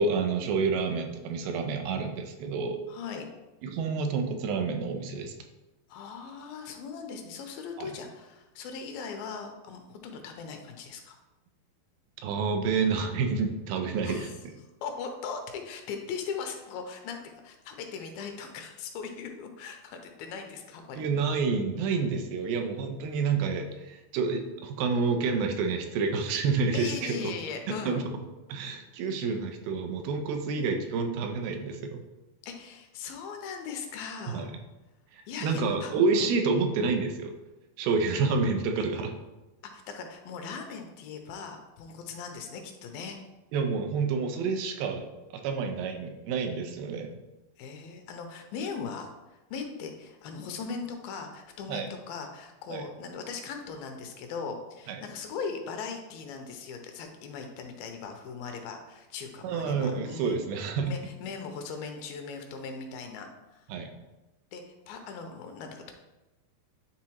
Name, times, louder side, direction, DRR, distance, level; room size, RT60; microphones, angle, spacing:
voice 1, 0.0-2.8 3.6-5.4 7.8-7.9 12.2-14.5 21.0-27.3 27.7-28.0 28.5-32.0 34.3-34.6 35.1-37.4 37.8-39.1 43.5-45.1 45.3-47.1 51.7-51.9 52.7-52.9 54.9-55.0 59.4-60.9 63.7-63.9, right 4 dB, 85° right, 5 dB, 2.5 m, -29 dB
voice 2, 2.9-3.3 5.9-11.2 14.0-14.3 14.8-21.0 26.7-28.0 32.4-34.5 35.3-35.9 36.2-36.3 39.7-43.2 47.6-60.4 60.8-63.7 64.5-65.9, left 5 dB, 85° left, 5 dB, 2.4 m, -39 dB
9.7 x 3.7 x 3.0 m, 1.0 s
omnidirectional pair, 4.3 m